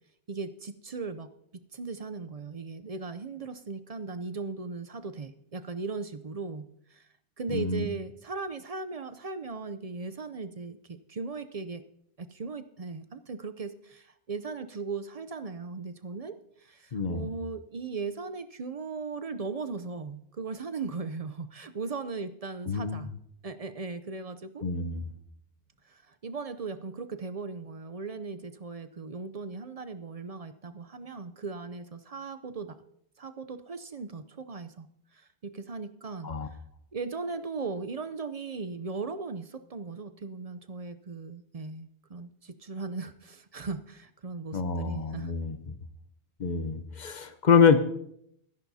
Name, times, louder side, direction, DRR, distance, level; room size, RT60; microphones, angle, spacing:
voice 1, 0.3-7.1 7.4-11.8 12.2-23.1 23.4-24.7 25.9-32.8 33.2-34.9 35.1-36.6 36.9-45.4, right 4 dB, 45° right, 11 dB, 0.6 m, -38 dB
voice 2, 7.5-7.9 16.9-17.3 22.7-23.1 24.6-25.1 36.2-36.5 44.5-45.7 46.4-47.8, left 6 dB, 45° left, 10 dB, 0.9 m, -26 dB
22.5 x 10.5 x 2.7 m, 0.72 s
omnidirectional pair, 1.1 m